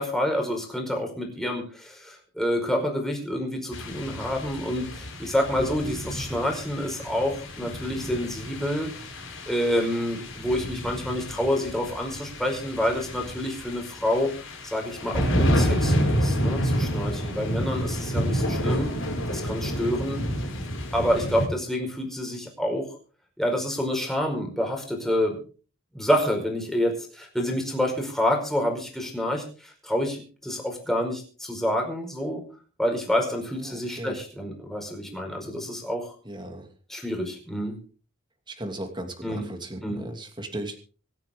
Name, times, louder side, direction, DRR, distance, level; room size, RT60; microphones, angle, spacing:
voice 1, 0.0-8.9 9.5-14.3 14.6-18.9 19.3-20.2 20.9-22.9 23.4-25.4 25.9-32.4 32.8-36.1 36.9-37.8 39.2-39.4 39.8-40.0, equal, ahead, 1 dB, 5.0 m, -28 dB
sound 1, 3.7-21.5, equal, 70° left, 7.3 m, -29 dB
voice 2, 33.7-34.1 36.3-36.7 38.6-40.8, right 1 dB, 25° right, 5 dB, 2.7 m, -36 dB
25.5 x 9.2 x 3.8 m, 0.39 s
head